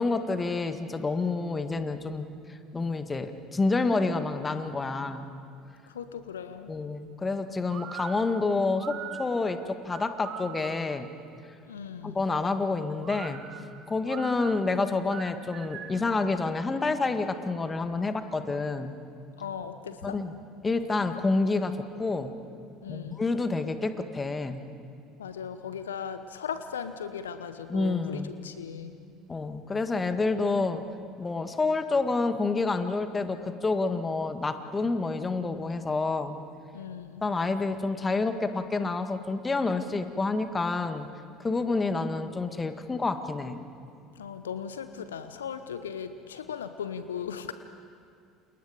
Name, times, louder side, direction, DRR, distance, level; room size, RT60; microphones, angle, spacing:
voice 1, 0.0-5.3 6.7-11.1 12.0-13.4 13.9-18.9 20.0-20.3 20.6-22.3 22.9-24.6 27.7-28.3 29.3-30.8 31.2-36.4 37.2-41.1 41.4-43.6, left 3 dB, 20° left, 8 dB, 1.8 m, -28 dB
voice 2, 5.9-6.7 11.7-12.2 19.4-20.2 22.8-23.3 25.2-29.0 36.7-37.3 44.2-47.5, left 7 dB, 80° left, 11 dB, 0.8 m, -37 dB
sound 1, 7.7-11.0 13.0-16.1, right 9 dB, 50° right, 2.0 m, -42 dB
29.5 x 28.0 x 5.1 m, 2.3 s
figure-of-eight pair, 65°, 0 cm